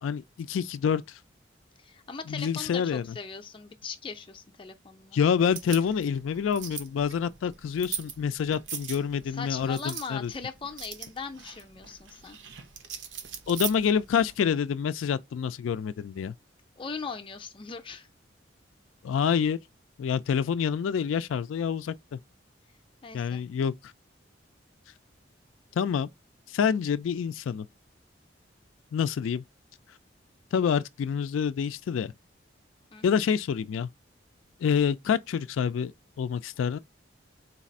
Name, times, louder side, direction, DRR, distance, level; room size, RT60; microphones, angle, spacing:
voice 1, 0.0-1.2 2.3-3.2 5.1-10.3 13.5-16.3 19.0-19.6 20.0-22.2 23.1-23.9 25.7-26.1 26.5-27.7 28.9-29.4 30.5-32.1 33.0-33.9 34.6-35.9 36.2-36.8, left 7 dB, 90° left, 0.3 m, -27 dB
voice 2, 1.8-5.2 9.3-12.4 16.8-18.1 23.0-23.5 32.9-33.0, left 5 dB, 25° left, 0.5 m, -39 dB
sound 1, 5.4-14.3, right 8 dB, 70° right, 0.8 m, -41 dB
4.0 x 2.5 x 4.0 m
head